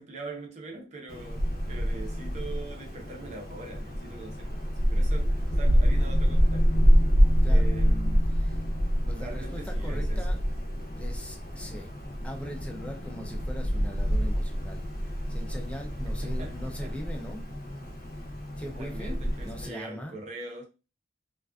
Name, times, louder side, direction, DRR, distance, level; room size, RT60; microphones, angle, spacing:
voice 1, 0.0-6.7 7.5-8.4 9.2-10.3 16.2-17.0 18.6-20.6, right 2 dB, 40° right, 0.7 m, -42 dB
Wind, 1.1-19.7, equal, 50° left, 0.6 m, -26 dB
voice 2, 7.4-7.8 8.3-8.6 9.1-10.4 11.0-11.9 12.2-14.8 15.3-17.5 18.6-20.2, left 1 dB, 5° left, 0.4 m, -40 dB
2.5 x 2.3 x 2.3 m
head